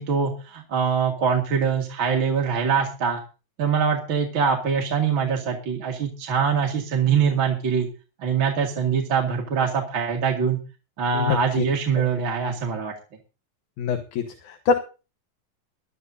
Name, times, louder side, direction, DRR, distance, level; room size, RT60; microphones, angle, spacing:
voice 1, 0.0-3.2 3.6-7.9 8.2-10.6 11.0-12.9, right 6 dB, 45° right, 0 dB, 2.3 m, -23 dB
voice 2, 13.8-14.7, left 5 dB, 75° left, 6 dB, 2.6 m, -24 dB
19.5 x 12.5 x 2.8 m, 0.32 s
omnidirectional pair, 3.6 m